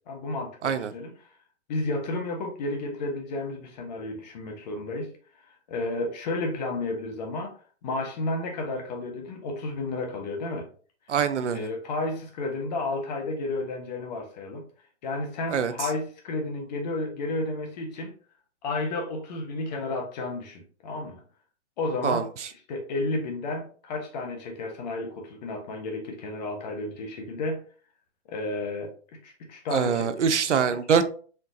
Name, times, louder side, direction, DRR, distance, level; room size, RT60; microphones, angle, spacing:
voice 1, 0.1-1.1 1.7-5.1 5.5-7.5 7.8-10.7 11.5-14.7 15.0-18.1 18.6-21.2 21.8-22.3 22.7-27.6 28.3-30.1 30.5-30.8, left 2 dB, 35° left, 3 dB, 1.1 m, -32 dB
voice 2, 11.1-11.7 15.5-15.7 22.0-22.2 29.7-31.0, right 7 dB, 85° right, 11 dB, 0.6 m, -24 dB
4.4 x 2.8 x 2.7 m, 0.42 s
hypercardioid pair, 140°, 35 cm